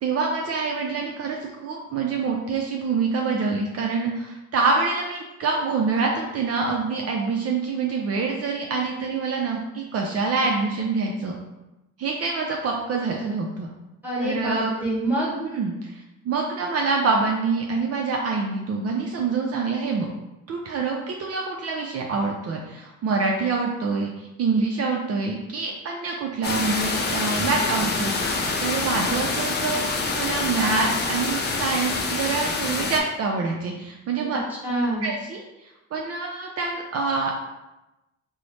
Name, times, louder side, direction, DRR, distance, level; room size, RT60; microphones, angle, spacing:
voice 1, 0.0-11.3 12.0-13.7 14.2-14.7 15.4-20.1 20.5-34.4 35.0-37.4, right 4 dB, 55° right, 0 dB, 0.5 m, -26 dB
voice 2, 14.0-15.3 34.3-35.0, right 1 dB, 5° right, -7 dB, 1.4 m, -26 dB
sound 1, 26.4-33.0, left 3 dB, 35° left, 0.6 m, -26 dB
3.0 x 2.0 x 4.1 m, 0.98 s
cardioid pair, 90°, 30 cm